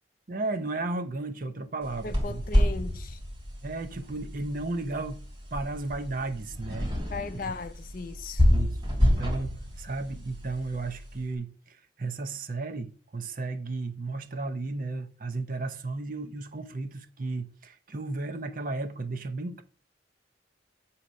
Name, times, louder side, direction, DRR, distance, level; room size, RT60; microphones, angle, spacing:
voice 1, 0.3-2.4 3.6-6.9 8.5-19.6, right 3 dB, 45° right, 0.7 m, -34 dB
sound 1, 1.8-11.2, left 1 dB, 20° right, 2.9 m, -28 dB
voice 2, 2.0-3.2 7.1-8.5, left 4 dB, 45° left, 0.5 m, -37 dB
8.0 x 2.8 x 6.2 m
head